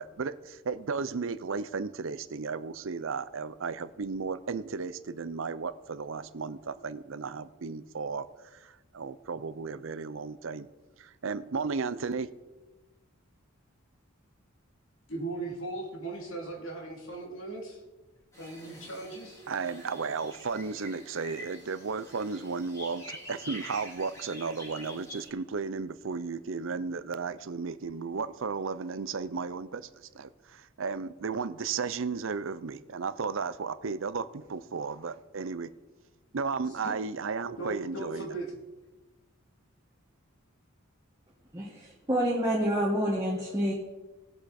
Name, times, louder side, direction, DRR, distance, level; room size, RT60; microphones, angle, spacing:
voice 1, 0.0-10.7 11.0-12.3 19.5-35.7 36.3-38.3, right 5 dB, 65° right, 15 dB, 0.6 m, -34 dB
voice 2, 15.1-17.8 18.4-19.4 36.8-36.9 37.6-38.6, right 2 dB, 70° left, 0 dB, 2.9 m, -38 dB
sound 1, 18.3-25.3, equal, 15° left, 3.8 m, -46 dB
voice 3, 41.5-43.7, equal, 15° right, -5 dB, 1.7 m, -28 dB
19.0 x 7.8 x 4.3 m, 1.1 s
head